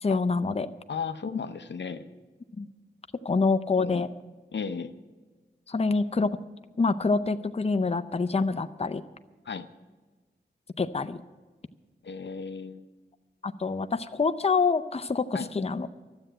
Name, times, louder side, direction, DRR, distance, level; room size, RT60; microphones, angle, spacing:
voice 1, 0.0-0.7 2.6-2.7 3.2-4.1 5.7-6.4 6.8-9.0 10.8-11.2 13.4-15.9, left 4 dB, 35° left, 10 dB, 0.6 m, -26 dB
voice 2, 0.9-2.0 3.8-4.1 4.5-4.9 9.4-9.7 12.0-12.8 15.3-15.5, left 5 dB, 80° left, 10 dB, 0.6 m, -34 dB
12.5 x 7.8 x 10.0 m, 1.3 s
wide cardioid pair, 50°, 18 cm